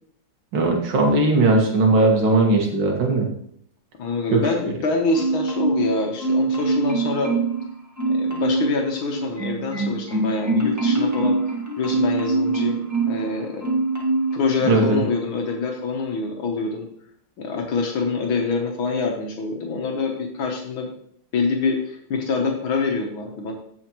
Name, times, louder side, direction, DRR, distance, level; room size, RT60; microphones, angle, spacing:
voice 1, 0.5-3.3 4.3-4.4 14.6-15.0, right 2 dB, 75° right, 1 dB, 2.5 m, -18 dB
voice 2, 4.0-7.3 8.1-11.4 11.8-12.8 13.1-13.7 14.3-16.9 17.4-20.9 21.3-23.5, left 4 dB, 80° left, 1 dB, 1.9 m, -25 dB
Marimba xylophone, 5.1-5.9 6.2-7.6 8.0-8.7 9.1-13.2 13.6-14.3 14.7-14.9, right 3 dB, 10° right, 1.4 m, -23 dB
15.5 x 5.7 x 3.0 m, 0.66 s
omnidirectional pair, 2.2 m